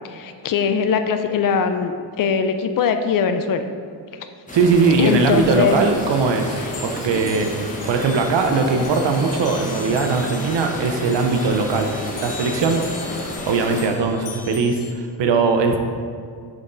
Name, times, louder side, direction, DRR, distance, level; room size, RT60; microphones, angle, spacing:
voice 1, 0.1-1.9 2.2-3.7 5.0-5.8, left 6 dB, 50° left, 8 dB, 0.5 m, -21 dB
sound 1, 4.5-13.9, left 1 dB, 20° left, 1.0 m, -31 dB
voice 2, 4.5-7.5 7.9-12.9 13.5-15.8, right 4 dB, 90° right, 5 dB, 0.7 m, -20 dB
sound 2, 5.8-14.9, left 5 dB, 75° left, 0.9 m, -39 dB
6.3 x 5.7 x 3.9 m, 2.2 s
wide cardioid pair, 145°, 42 cm